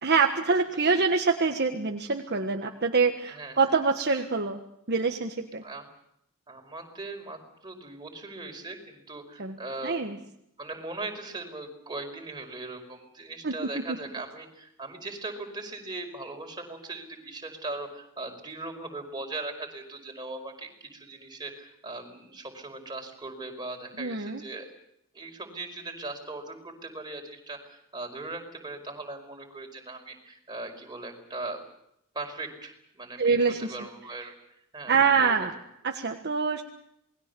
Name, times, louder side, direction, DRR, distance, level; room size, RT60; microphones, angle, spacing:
voice 1, 0.0-4.6 4.9-5.6 9.4-9.6 9.8-10.2 13.4-13.5 24.0-24.4 33.2-33.8 34.9-35.5 35.8-36.6, right 4 dB, 50° right, 4 dB, 1.4 m, -25 dB
voice 2, 3.3-3.6 5.6-5.8 6.5-10.3 10.6-24.7 25.1-31.6 32.1-34.3 34.7-35.5, right 2 dB, 20° right, 2 dB, 5.1 m, -39 dB
28.0 x 21.0 x 6.9 m, 0.77 s
head